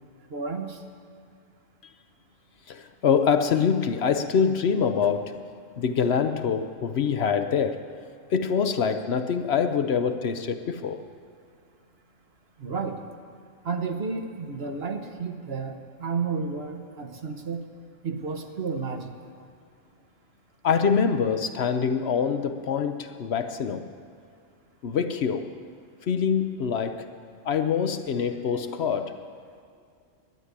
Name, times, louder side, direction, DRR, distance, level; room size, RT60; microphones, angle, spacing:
voice 1, 0.3-0.8 12.6-13.0 13.6-17.6 18.0-19.1, right 5 dB, 55° right, 1.3 m, -31 dB
voice 2, 2.7-5.4 5.8-7.9 8.3-11.0 20.6-23.9 24.8-25.5 26.1-27.1 27.4-29.2, left 6 dB, 60° left, 0.9 m, -25 dB
12.0 x 9.7 x 9.6 m
omnidirectional pair, 1.3 m